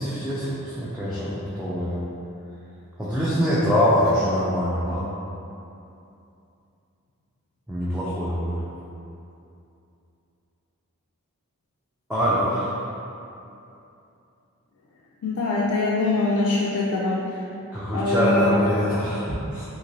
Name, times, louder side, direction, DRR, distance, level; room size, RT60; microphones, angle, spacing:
voice 1, 0.0-2.1 3.0-5.1 7.7-8.6 12.1-12.8 17.7-19.6, equal, 5° right, -10 dB, 0.3 m, -24 dB
voice 2, 15.2-17.2 17.9-18.5, left 3 dB, 70° left, -5 dB, 0.3 m, -23 dB
3.0 x 2.7 x 2.6 m, 2.7 s
head